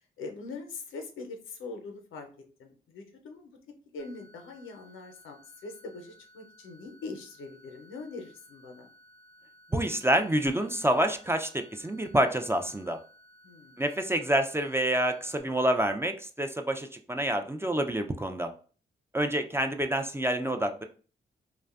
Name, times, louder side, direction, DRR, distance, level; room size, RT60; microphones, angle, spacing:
voice 1, 0.2-2.3 2.6-3.6 3.9-8.9 13.4-13.8, left 3 dB, 80° left, 4 dB, 0.5 m, -42 dB
sound 1, 4.0-15.4, equal, 45° right, 0.9 m, -58 dB
voice 2, 9.7-13.0 13.8-18.5 19.1-20.9, right 1 dB, 10° right, 5 dB, 0.4 m, -27 dB
2.5 x 2.1 x 2.3 m, 0.39 s
supercardioid pair, 45°, 20 cm